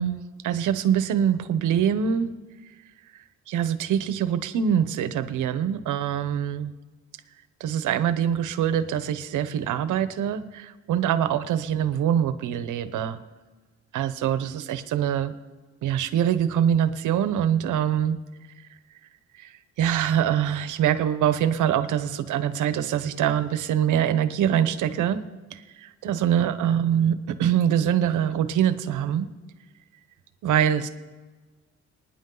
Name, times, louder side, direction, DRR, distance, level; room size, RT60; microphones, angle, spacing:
voice 1, 0.0-2.3 3.5-6.7 7.6-13.2 13.9-15.3 15.8-18.2 19.4-19.5 19.8-25.2 25.5-29.3 30.4-30.9, right 9 dB, 80° right, 12 dB, 1.0 m, -24 dB
27.5 x 10.0 x 3.9 m, 1.3 s
cardioid pair, 90°, 30 cm